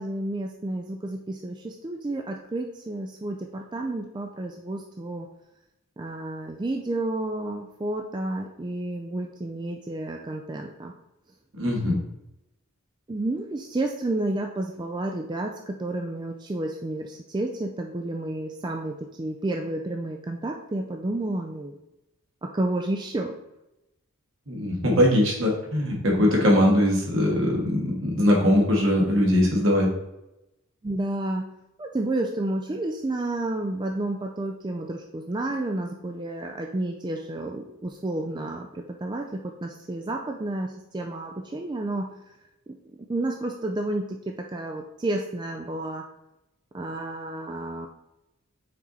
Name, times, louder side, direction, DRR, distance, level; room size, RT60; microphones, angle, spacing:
voice 1, 0.0-5.3 6.0-10.9 13.1-21.8 22.4-23.3 30.8-31.5 31.8-42.2 42.7-42.8 43.1-46.1 46.7-47.9, right 2 dB, 20° right, 3 dB, 0.4 m, -31 dB
voice 2, 11.5-12.0 24.5-29.9, left 1 dB, 65° right, -1 dB, 1.8 m, -21 dB
6.0 x 4.5 x 4.1 m, 0.92 s
head